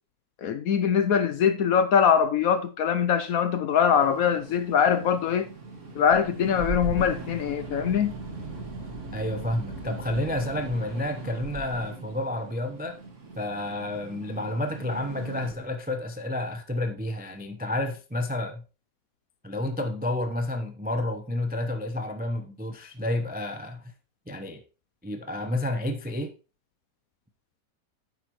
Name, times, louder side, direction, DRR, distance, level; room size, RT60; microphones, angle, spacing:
voice 1, 0.4-5.5 5.9-8.2, left 7 dB, 65° left, 0.9 m, -23 dB
sound 1, 4.0-15.5, right 2 dB, 45° right, 2.2 m, -39 dB
voice 2, 9.1-13.0 13.3-18.6 19.4-23.9 24.3-24.6 25.0-26.3, left 1 dB, 10° right, 0.4 m, -30 dB
10.0 x 7.9 x 3.0 m
omnidirectional pair, 1.9 m